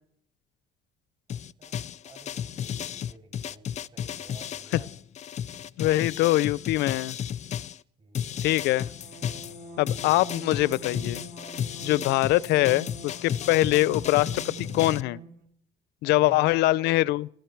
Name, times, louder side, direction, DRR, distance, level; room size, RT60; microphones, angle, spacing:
sound 1, 1.3-7.8 8.1-15.0, left 9 dB, 45° left, 0.5 m, -34 dB
voice 1, 1.3-4.9 8.0-8.9 9.4-9.8 11.6-12.0 16.1-16.7, right 3 dB, 35° right, 7.3 m, -52 dB
voice 2, 5.8-7.2 8.4-8.9 9.8-11.2 11.8-15.2 16.0-17.3, left 17 dB, 90° left, 0.6 m, -23 dB
sound 2, 8.6-15.5, right 3 dB, 60° right, 4.4 m, -44 dB
21.0 x 14.5 x 4.6 m
cardioid pair, 110°, 17 cm